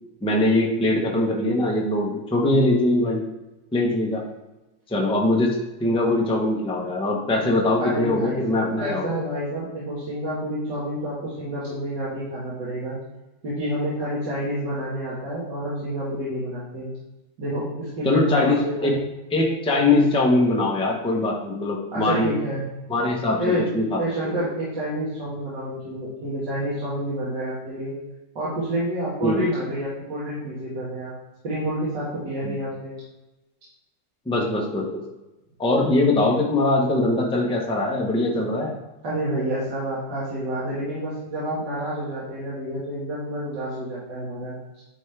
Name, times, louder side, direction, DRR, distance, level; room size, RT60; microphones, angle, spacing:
voice 1, 0.2-3.2 3.7-4.2 4.9-9.2 18.0-19.0 19.3-22.3 22.9-24.3 29.2-29.4 32.4-32.6 34.3-34.8 35.6-38.8, left 2 dB, 5° left, -1 dB, 0.6 m, -22 dB
voice 2, 7.8-13.0 13.4-16.9 17.4-19.0 21.9-22.6 23.4-23.7 24.0-27.9 28.4-31.1 31.4-32.9 39.0-44.5, equal, 75° right, -9 dB, 2.3 m, -29 dB
9.9 x 3.6 x 3.4 m, 1.0 s
omnidirectional pair, 1.9 m